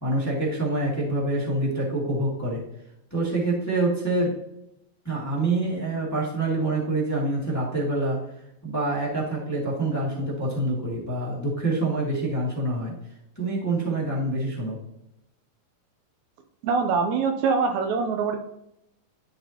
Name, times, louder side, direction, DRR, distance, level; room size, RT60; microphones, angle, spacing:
voice 1, 0.0-2.6 3.1-4.3 5.0-8.2 8.6-12.9 13.3-14.8, right 2 dB, 10° left, -5 dB, 0.9 m, -26 dB
voice 2, 16.6-18.4, right 5 dB, 85° right, 5 dB, 1.6 m, -23 dB
10.5 x 5.4 x 2.9 m, 0.80 s
omnidirectional pair, 4.1 m